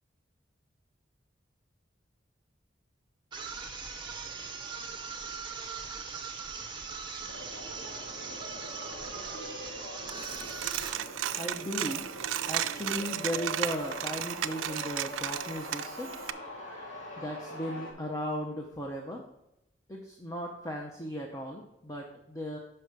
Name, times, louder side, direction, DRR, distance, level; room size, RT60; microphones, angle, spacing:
sound 1, 3.3-11.1, right 5 dB, 25° right, 0.7 m, -40 dB
sound 2, 7.3-17.9, left 1 dB, 70° left, 2.0 m, -43 dB
Coin (dropping), 10.1-16.3, right 11 dB, 90° right, 0.4 m, -34 dB
voice 1, 11.4-12.1 12.5-16.1 17.2-19.2 19.9-22.6, equal, 15° left, 0 dB, 0.6 m, -36 dB
5.7 x 4.9 x 6.6 m, 0.87 s
head